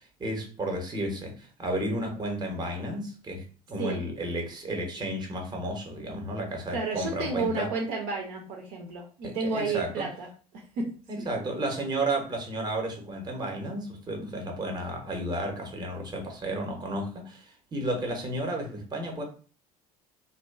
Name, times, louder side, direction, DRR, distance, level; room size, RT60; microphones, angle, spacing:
voice 1, 0.0-7.7 9.2-10.1 11.1-19.2, right 1 dB, 20° right, 2 dB, 0.8 m, -32 dB
voice 2, 6.7-10.3 10.8-10.9 11.2-11.3, right 3 dB, 55° right, 0 dB, 0.6 m, -31 dB
2.5 x 2.2 x 2.4 m, 0.38 s
figure-of-eight pair, 65°, 19 cm